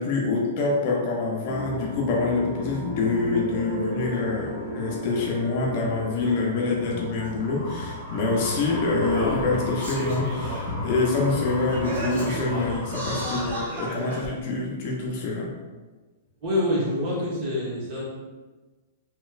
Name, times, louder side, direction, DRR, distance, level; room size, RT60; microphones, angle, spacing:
voice 1, 0.0-15.5, left 3 dB, 45° left, -2 dB, 0.6 m, -26 dB
sound 1, 1.5-13.4, left 1 dB, 5° left, 1.3 m, -34 dB
Singing, 7.2-7.3 8.3-8.4 9.0-10.7 11.2-11.3 11.7-14.3 15.0-15.1, right 1 dB, 65° right, 1.1 m, -33 dB
voice 2, 16.4-18.0, left 1 dB, 40° right, -6 dB, 1.2 m, -26 dB
3.1 x 2.9 x 2.4 m, 1.3 s
hypercardioid pair, 160°, 0 cm